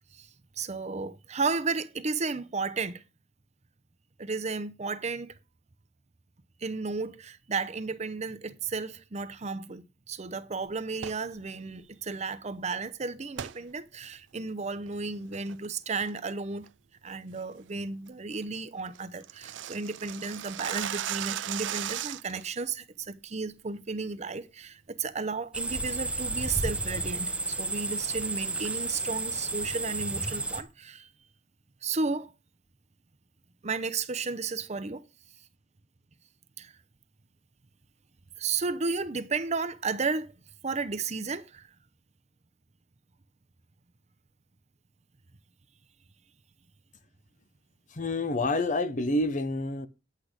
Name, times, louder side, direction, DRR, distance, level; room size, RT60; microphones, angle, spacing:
voice 1, 0.6-3.0 4.2-5.3 6.6-16.7 17.0-31.1 31.8-32.3 33.6-35.0 36.6-36.7 38.4-40.3 40.6-41.7, right 4 dB, 40° right, 0.7 m, -33 dB
sound 1, 10.9-11.3 13.4-13.6 14.1-14.2 14.7-14.9 15.3-15.7 16.0-16.3 16.6-16.7 17.1-17.4 17.7-17.8 18.1-18.2 18.4-18.5 18.8-22.4, right 11 dB, 75° right, 0.5 m, -36 dB
sound 2, 25.5-30.6, right 3 dB, 5° right, 0.9 m, -32 dB
voice 2, 47.9-49.9, left 2 dB, 45° left, 0.8 m, -28 dB
10.5 x 8.2 x 5.0 m
head